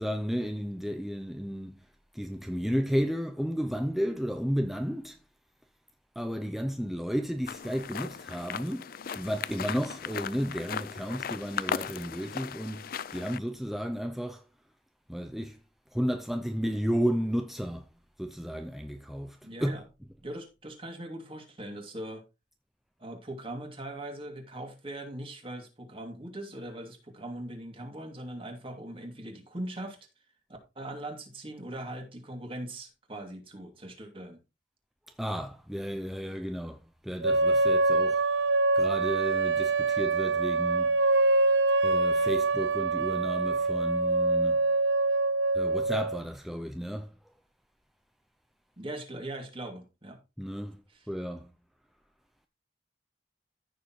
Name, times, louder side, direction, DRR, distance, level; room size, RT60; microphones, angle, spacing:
voice 1, 0.0-1.9 2.1-5.2 6.2-14.4 15.1-15.6 15.9-17.9 18.2-19.9 35.1-38.5 38.8-41.1 41.8-44.7 45.5-47.1 50.4-51.6, equal, ahead, 0.5 m, -33 dB
sound 1, 7.5-13.4, left 7 dB, 55° left, 0.4 m, -37 dB
voice 2, 19.4-19.8 20.2-22.2 23.0-30.0 30.8-34.4 48.8-50.2, right 1 dB, 30° right, 2.7 m, -40 dB
sound 2, 37.2-46.2, right 3 dB, 90° right, 0.6 m, -25 dB
14.5 x 6.8 x 3.1 m
head